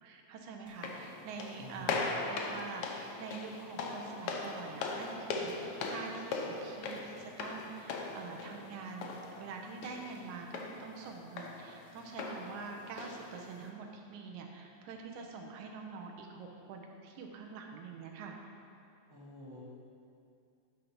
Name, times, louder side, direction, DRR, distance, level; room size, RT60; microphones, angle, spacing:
voice 1, 0.0-9.1 9.4-18.4, right 4 dB, 90° right, 2 dB, 2.2 m, -45 dB
sound 1, 0.7-13.7, left 3 dB, 85° left, 1.3 m, -40 dB
voice 2, 1.6-2.2 19.1-19.6, equal, 10° right, -8 dB, 1.2 m, -49 dB
9.9 x 3.9 x 5.9 m, 2.5 s
omnidirectional pair, 3.3 m